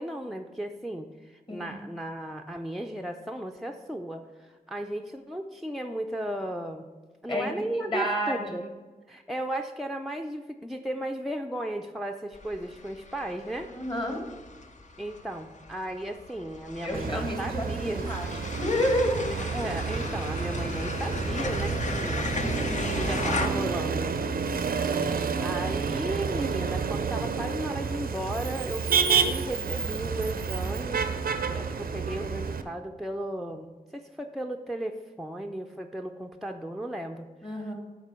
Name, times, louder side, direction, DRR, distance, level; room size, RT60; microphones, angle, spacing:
voice 1, 0.0-6.9 7.2-8.6 9.1-13.7 15.0-18.0 19.3-22.2 22.9-24.1 25.4-31.0 31.5-37.3, right 1 dB, ahead, 2 dB, 0.4 m, -35 dB
voice 2, 7.3-8.6 13.8-14.2 16.8-18.3 18.6-19.3 22.4-23.0 37.4-37.7, equal, 30° left, 1 dB, 1.9 m, -30 dB
sound 1, 12.3-23.5, left 3 dB, 55° left, 0.8 m, -36 dB
Motor vehicle (road), 16.9-32.6, right 6 dB, 75° right, 0.5 m, -30 dB
8.8 x 3.7 x 6.1 m, 1.3 s
wide cardioid pair, 65°, 15 cm